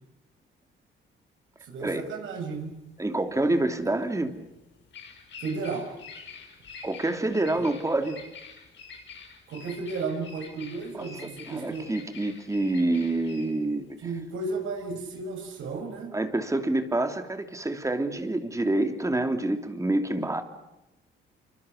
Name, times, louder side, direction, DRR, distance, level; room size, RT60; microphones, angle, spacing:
voice 1, 1.6-2.7 5.4-5.9 9.5-11.9 14.0-16.1, right 4 dB, 80° right, 4 dB, 7.1 m, -33 dB
Bird vocalization bird call bird song, 2.5-15.8, left 5 dB, 65° left, 6.5 m, -47 dB
voice 2, 3.0-4.3 6.8-8.2 10.9-13.8 16.1-20.4, right 2 dB, 15° right, 6 dB, 3.0 m, -27 dB
27.0 x 25.0 x 6.7 m, 0.97 s
cardioid pair, 90°, 20 cm